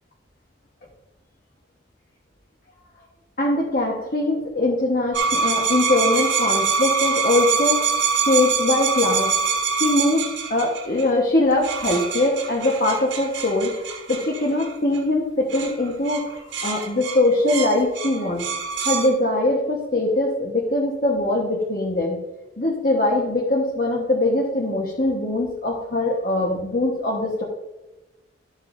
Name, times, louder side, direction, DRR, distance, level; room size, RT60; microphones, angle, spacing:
voice 1, 3.4-9.3 9.7-18.5 18.8-22.2 22.6-27.4, left 2 dB, 50° left, -3 dB, 1.3 m, -22 dB
sound 1, 5.1-11.0 11.6-15.0 15.5-15.7 16.1-16.2 16.5-19.1, right 5 dB, 80° right, 1.6 m, -24 dB
12.0 x 7.9 x 2.7 m, 1.0 s
head